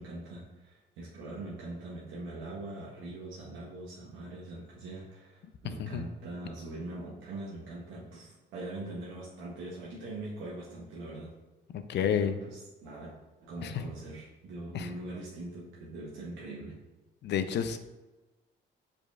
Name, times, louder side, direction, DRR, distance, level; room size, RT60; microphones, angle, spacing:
voice 1, 0.0-11.4 12.1-13.1 13.4-16.8, right 2 dB, 90° right, -5 dB, 0.8 m, -42 dB
voice 2, 11.7-12.4 13.6-13.7 14.7-14.9 17.2-17.8, left 8 dB, 60° left, 9 dB, 0.4 m, -30 dB
5.1 x 4.3 x 2.4 m, 1.1 s
cardioid pair, 90°, 20 cm